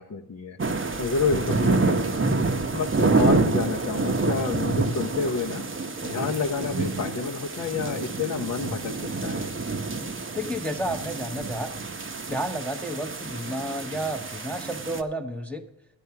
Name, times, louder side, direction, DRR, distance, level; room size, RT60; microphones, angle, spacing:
voice 1, 0.0-2.3 2.7-9.5, left 5 dB, 40° left, 1 dB, 0.8 m, -29 dB
sound 1, 0.6-15.0, right 3 dB, 25° right, 0.9 m, -27 dB
voice 2, 10.3-11.7 12.3-15.6, right 1 dB, 5° left, 3 dB, 1.0 m, -31 dB
12.0 x 9.7 x 5.8 m, 0.81 s
cardioid pair, 75°, 44 cm